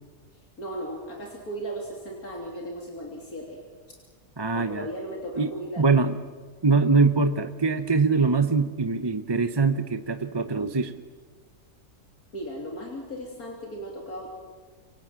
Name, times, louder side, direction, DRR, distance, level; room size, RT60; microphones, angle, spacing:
voice 1, 0.6-3.6 4.5-5.9 12.3-14.3, right 1 dB, 80° left, 0 dB, 3.8 m, -36 dB
voice 2, 4.4-4.9 5.4-5.5 5.8-6.2 6.6-11.0, right 4 dB, 20° right, 9 dB, 0.7 m, -23 dB
27.5 x 24.5 x 7.7 m, 1.5 s
omnidirectional pair, 1.5 m